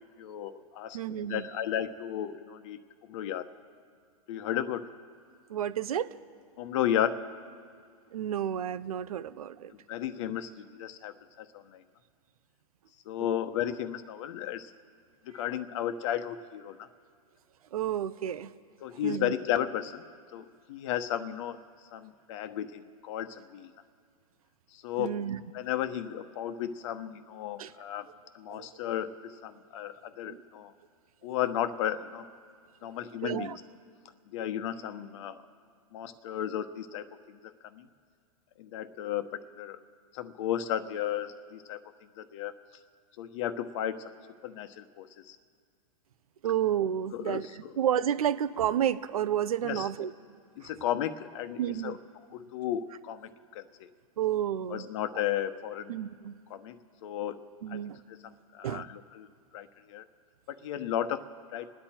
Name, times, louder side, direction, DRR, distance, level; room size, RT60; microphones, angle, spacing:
voice 1, 0.2-2.8 3.1-3.5 4.3-4.9 6.6-7.3 9.9-11.8 13.1-14.7 15.3-16.9 18.8-20.0 20.3-21.6 21.9-23.7 24.7-25.2 25.5-28.1 28.3-30.7 31.2-32.2 32.8-33.6 34.3-35.4 35.9-37.4 37.7-37.8 38.6-39.8 40.1-41.8 42.2-42.5 43.2-44.0 44.4-45.4 47.1-47.4 49.6-49.9 50.6-52.0 52.3-53.3 53.5-53.6 54.7-55.9 56.5-56.8 57.0-57.4 57.7-57.8 58.5-59.3 59.5-60.0 60.6-61.2 61.5-61.7, left 10 dB, 55° left, 10 dB, 1.1 m, -34 dB
voice 2, 0.9-1.5 5.5-6.1 8.1-9.7 13.2-13.3 15.3-15.4 17.7-18.5 19.0-19.3 25.0-25.4 27.6-27.7 28.5-28.7 30.3-30.4 33.2-33.6 46.4-50.1 50.6-50.9 51.6-52.0 54.2-54.9 55.9-56.4 57.6-58.0 58.6-58.9, right 10 dB, 80° right, 14 dB, 0.7 m, -31 dB
27.5 x 9.9 x 4.4 m, 2.1 s
hypercardioid pair, 135°, 18 cm